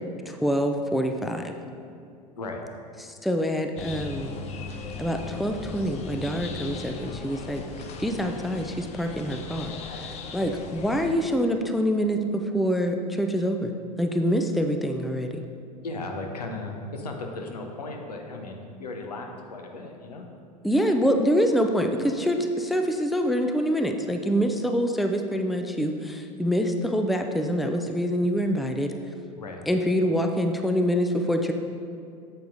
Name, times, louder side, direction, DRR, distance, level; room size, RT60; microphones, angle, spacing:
voice 1, 0.3-1.5 3.2-4.4 5.0-7.6 8.0-13.7 14.0-15.4 20.6-28.9 29.7-31.5, equal, ahead, 4 dB, 0.4 m, -25 dB
sound 1, 3.8-11.1, left 4 dB, 30° left, 0.7 m, -38 dB
voice 2, 15.8-20.2 29.4-29.6, left 2 dB, 80° left, 3 dB, 0.9 m, -36 dB
8.2 x 7.9 x 2.6 m, 2.5 s
figure-of-eight pair, 80°, 20 cm